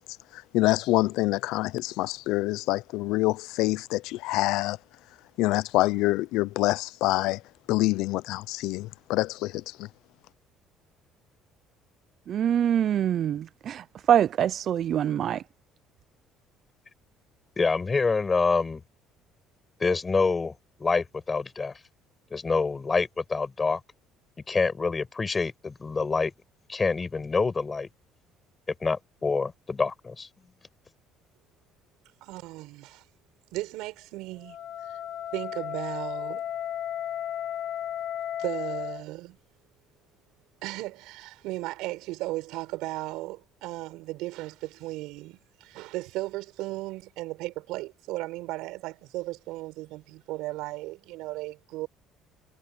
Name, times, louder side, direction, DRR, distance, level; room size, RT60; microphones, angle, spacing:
voice 1, 0.3-4.8 5.4-7.4 7.7-9.9, left 19 dB, 80° left, 0.5 m, -26 dB
voice 2, 12.3-15.4, right 10 dB, 45° right, 0.3 m, -24 dB
voice 3, 17.6-18.8 19.8-20.5 20.8-21.7 22.3-23.8 24.5-26.3 26.7-27.9 28.8-30.3, left 4 dB, 20° left, 5.4 m, -26 dB
voice 4, 32.2-33.0 33.5-34.6 34.8-35.0 35.3-36.5 38.4-39.4 40.6-51.9, right 19 dB, 80° right, 7.4 m, -36 dB
Wind instrument woodwind instrument, 34.4-39.0, left 10 dB, 50° left, 2.2 m, -34 dB
cardioid pair, 155°, 0 cm